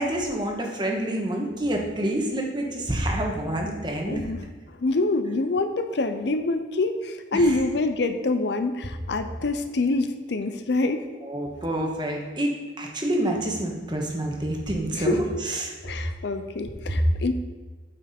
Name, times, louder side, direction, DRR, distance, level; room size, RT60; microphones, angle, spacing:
voice 1, 0.0-4.2 7.3-7.5 11.2-15.7 16.9-17.0, right 1 dB, 25° right, 0 dB, 1.2 m, -27 dB
voice 2, 4.1-4.5 4.8-11.0 14.9-15.2 15.8-17.3, left 2 dB, 60° left, 9 dB, 0.5 m, -26 dB
9.1 x 5.8 x 4.3 m, 1.3 s
head